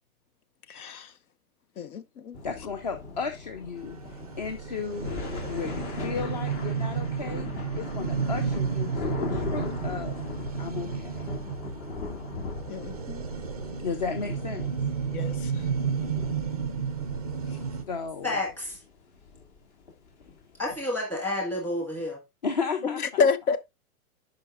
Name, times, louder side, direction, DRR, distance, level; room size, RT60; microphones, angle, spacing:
voice 1, 0.7-1.1 1.8-2.4 12.7-13.2 15.1-15.3 23.2-23.6, left 5 dB, 80° left, 1.1 m, -27 dB
sound 1, 2.3-20.8, left 4 dB, 45° left, 2.5 m, -39 dB
voice 2, 2.4-10.2 10.6-11.3 13.8-14.7 17.9-18.4 22.4-23.3, left 5 dB, 30° left, 0.5 m, -34 dB
sound 2, 3.8-17.8, right 6 dB, 30° right, 0.4 m, -32 dB
voice 3, 18.2-18.8 20.6-22.2, left 1 dB, 5° left, 1.5 m, -30 dB
11.5 x 5.0 x 2.4 m
hypercardioid pair, 170°, 44 cm